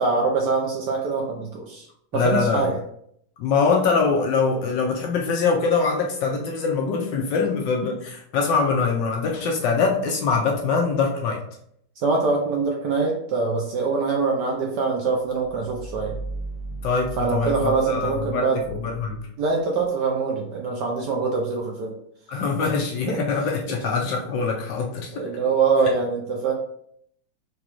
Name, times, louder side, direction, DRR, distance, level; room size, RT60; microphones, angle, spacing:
voice 1, 0.0-1.9 2.1-2.8 12.0-16.1 17.2-18.6 19.4-22.0 22.6-22.7 23.1-23.2 23.7-23.8 25.1-26.5, right 4 dB, 75° right, 0 dB, 1.0 m, -24 dB
voice 2, 2.1-2.6 3.4-11.4 16.8-19.2 22.3-25.3, left 5 dB, 75° left, 0 dB, 1.1 m, -23 dB
sound 1, 15.3-19.9, right 2 dB, 30° right, 0.8 m, -37 dB
5.0 x 2.2 x 2.9 m, 0.69 s
omnidirectional pair, 2.3 m